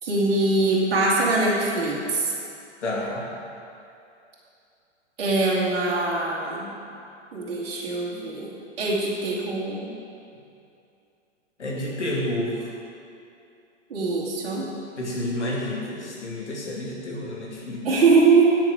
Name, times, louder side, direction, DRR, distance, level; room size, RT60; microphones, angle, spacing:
voice 1, 0.0-2.3 5.2-6.7 7.3-9.9 13.9-14.7 17.8-18.4, right 3 dB, 55° right, -5 dB, 2.6 m, -22 dB
voice 2, 2.8-3.2 11.6-12.6 15.0-17.8, left 1 dB, 70° left, -3 dB, 2.6 m, -29 dB
9.6 x 9.3 x 4.9 m, 2.6 s
figure-of-eight pair, 110°, 36 cm